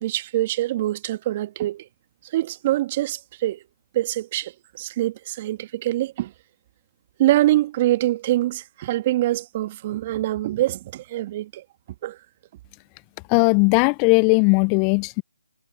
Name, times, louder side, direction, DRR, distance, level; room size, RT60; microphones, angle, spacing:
voice 1, 0.0-1.9 2.3-3.6 3.9-6.3 7.2-11.6 12.0-12.2, right 15 dB, 30° right, 1.5 m, -24 dB
voice 2, 13.3-15.2, left 35 dB, 20° left, 0.3 m, -18 dB
figure-of-eight pair, 150°, 0 cm